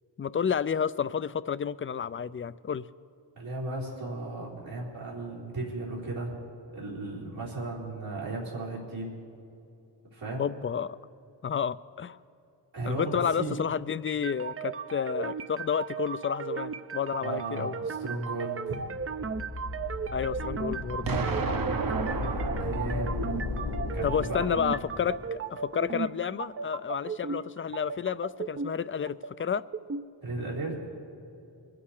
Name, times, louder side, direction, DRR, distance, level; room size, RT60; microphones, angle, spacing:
voice 1, 0.2-2.8 10.4-11.0 11.4-12.2 12.8-17.7 20.1-21.2 24.0-29.6, left 7 dB, 30° left, 16 dB, 0.4 m, -30 dB
voice 2, 3.4-6.4 6.7-9.2 10.1-10.4 12.7-13.5 17.2-18.9 22.0-23.2 23.9-24.5 30.2-30.8, right 2 dB, 85° right, -7 dB, 4.0 m, -35 dB
sound 1, 14.1-30.1, right 5 dB, 30° right, 0.6 m, -36 dB
sound 2, 18.8-25.3, left 3 dB, 85° left, 2.1 m, -36 dB
Explosion, 21.1-24.0, right 4 dB, 50° right, 1.0 m, -33 dB
23.5 x 8.5 x 4.9 m, 2.7 s
cardioid pair, 45°, 46 cm